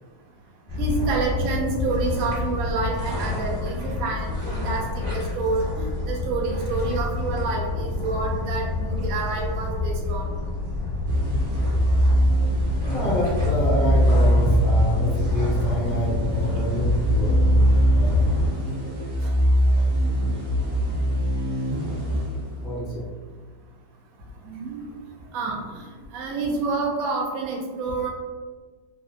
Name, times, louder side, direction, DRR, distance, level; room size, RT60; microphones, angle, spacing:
sound 1, 0.7-18.5, left 3 dB, 25° right, 1.5 m, -28 dB
voice 1, 0.8-10.3 19.2-19.3 21.2-21.3 24.4-24.8 25.3-28.1, right 4 dB, 80° right, -1 dB, 0.7 m, -28 dB
sound 2, 11.1-22.9, equal, 55° right, 1.0 m, -22 dB
voice 2, 12.8-17.3 17.9-18.1 20.0-20.1 22.5-23.0, equal, 40° left, -8 dB, 0.5 m, -28 dB
3.2 x 2.8 x 2.4 m, 1.4 s
omnidirectional pair, 2.2 m